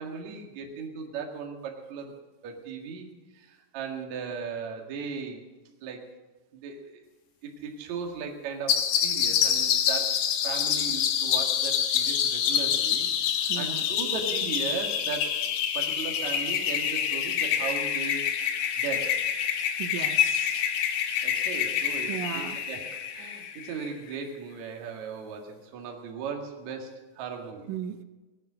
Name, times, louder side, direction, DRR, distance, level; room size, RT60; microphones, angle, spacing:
voice 1, 0.0-2.1 2.4-3.1 3.3-5.4 5.8-6.1 6.5-7.0 7.4-15.4 15.7-18.3 18.8-19.2 21.2-27.7, right 5 dB, 55° right, 1 dB, 2.3 m, -37 dB
sound 1, 8.7-23.9, left 8 dB, 80° left, 1.9 m, -27 dB
voice 2, 13.5-13.8 19.8-20.6 22.1-22.6 27.7-28.0, right 9 dB, 85° right, 9 dB, 3.1 m, -36 dB
18.5 x 10.5 x 6.3 m, 1.2 s
omnidirectional pair, 5.6 m